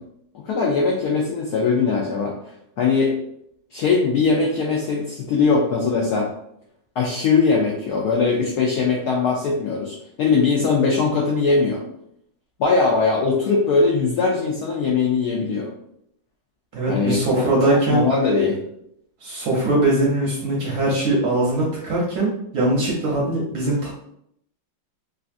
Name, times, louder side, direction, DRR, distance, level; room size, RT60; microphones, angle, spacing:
voice 1, 0.3-2.4 2.8-3.2 3.7-6.3 7.0-11.8 12.6-15.7 16.9-17.5 17.7-18.6, left 4 dB, 85° left, -1 dB, 0.8 m, -20 dB
voice 2, 16.7-18.1 19.2-23.9, right 2 dB, 65° right, -3 dB, 1.0 m, -21 dB
3.2 x 2.4 x 2.5 m, 0.73 s
omnidirectional pair, 2.2 m